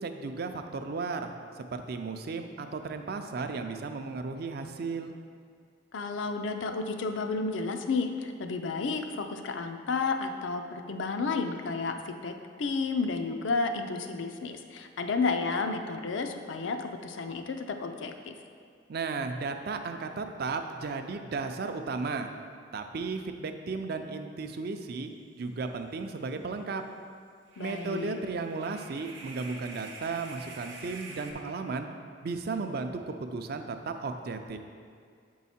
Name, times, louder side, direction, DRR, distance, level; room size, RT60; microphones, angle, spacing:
voice 1, 0.0-5.1 18.9-22.3 22.7-26.8 27.6-31.9 32.2-34.6, right 4 dB, 55° right, 7 dB, 0.4 m, -35 dB
voice 2, 5.9-18.3 27.6-28.2, left 4 dB, 70° left, 6 dB, 0.5 m, -32 dB
sound 1, 25.5-25.6 25.9-26.0 27.5-31.3, right 3 dB, 70° right, 0.8 m, -47 dB
7.1 x 4.7 x 4.2 m, 2.2 s
head